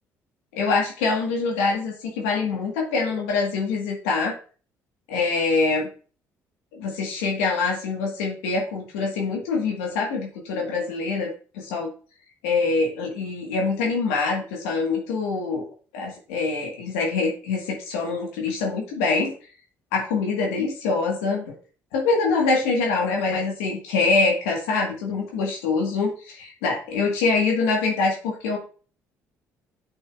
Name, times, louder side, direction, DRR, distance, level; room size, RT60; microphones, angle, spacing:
voice 1, 0.5-4.3 5.1-5.9 6.7-11.9 12.4-15.6 15.9-19.3 19.9-21.5 21.9-28.6, left 4 dB, 85° left, 0 dB, 1.5 m, -24 dB
7.9 x 5.5 x 2.4 m, 0.39 s
hypercardioid pair, 60°, 7 cm